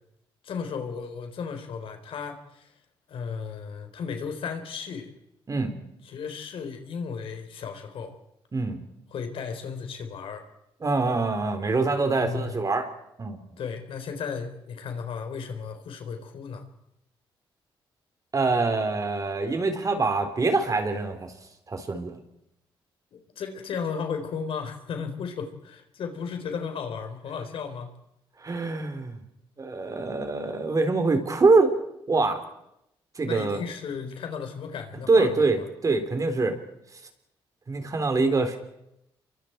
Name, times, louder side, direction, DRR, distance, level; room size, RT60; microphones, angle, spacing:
voice 1, 0.4-2.7 3.1-5.1 6.0-8.2 9.1-10.5 12.2-12.6 13.6-16.7 23.1-27.9 33.2-35.5, left 6 dB, 70° left, 6 dB, 4.0 m, -35 dB
voice 2, 10.8-12.9 13.2-13.4 18.3-21.3 21.7-22.2 28.4-29.2 29.6-31.8 32.1-32.4 33.2-33.6 35.1-36.6 37.7-38.6, right 3 dB, 35° right, 6 dB, 3.9 m, -24 dB
29.0 x 23.5 x 4.6 m, 0.81 s
cardioid pair, 75°, 10 cm